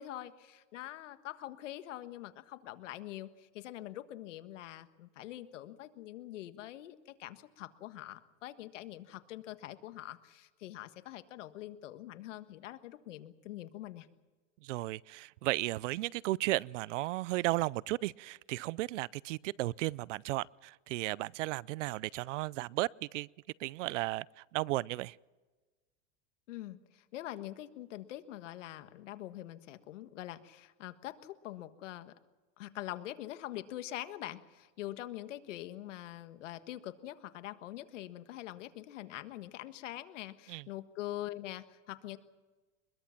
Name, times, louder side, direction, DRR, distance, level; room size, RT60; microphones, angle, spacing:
voice 1, 0.0-14.1 26.5-32.1 32.6-42.2, left 14 dB, 90° left, 1.6 m, -44 dB
voice 2, 14.6-23.3 23.6-25.2 40.5-40.6, right 18 dB, 80° right, 0.6 m, -34 dB
23.5 x 21.5 x 5.9 m
supercardioid pair, 145°, 36 cm